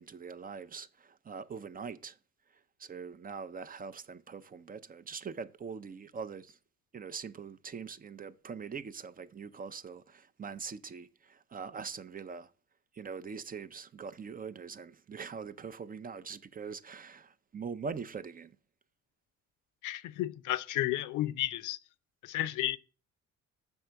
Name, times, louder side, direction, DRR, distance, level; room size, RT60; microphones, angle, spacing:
voice 1, 0.0-2.2 2.8-6.6 6.9-12.5 12.9-18.5, right 5 dB, 30° right, 0.5 m, -43 dB
voice 2, 19.8-21.8 22.2-22.8, left 14 dB, 85° left, 0.5 m, -32 dB
6.8 x 5.3 x 4.5 m
cardioid pair, 90°, 30 cm